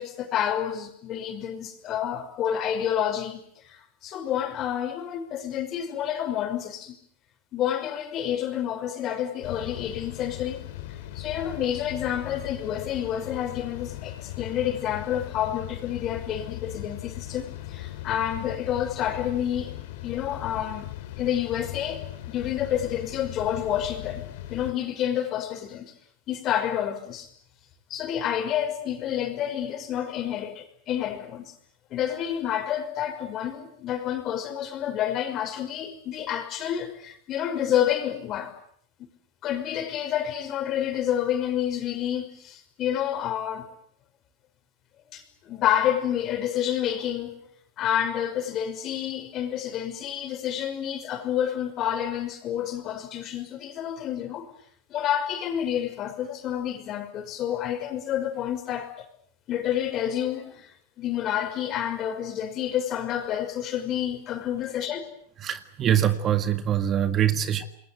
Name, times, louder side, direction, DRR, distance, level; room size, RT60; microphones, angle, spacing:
voice 1, 0.0-7.0 7.5-10.7 11.1-19.7 20.0-20.9 21.2-24.2 24.5-25.9 26.3-27.3 27.9-31.4 31.9-38.5 39.4-43.7 45.1-47.4 47.8-54.5 54.9-58.9 59.5-60.7 61.0-65.1, left 10 dB, 40° left, 5.7 m, -29 dB
sound 1, 9.4-24.7, left 14 dB, 65° left, 3.7 m, -39 dB
voice 2, 65.4-67.6, right 10 dB, 30° right, 1.9 m, -23 dB
28.5 x 21.5 x 7.8 m
hypercardioid pair, 115°, 0 cm